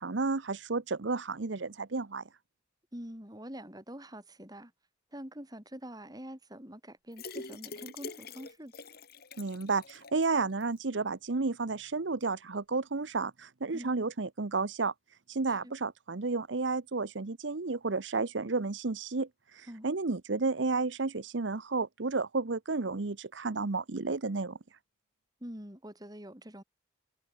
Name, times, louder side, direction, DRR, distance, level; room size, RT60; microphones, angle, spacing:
voice 1, 0.0-2.2 9.4-14.9 15.3-24.6, right 3 dB, 70° right, 0.9 m, -32 dB
voice 2, 2.9-4.7 5.1-8.7 13.7-13.9 15.6-15.7 19.7-19.9 25.4-26.6, equal, 20° right, 5.7 m, -45 dB
sound 1, 7.1-10.2 10.6-10.7 11.0-11.1, left 4 dB, 50° left, 5.1 m, -45 dB
head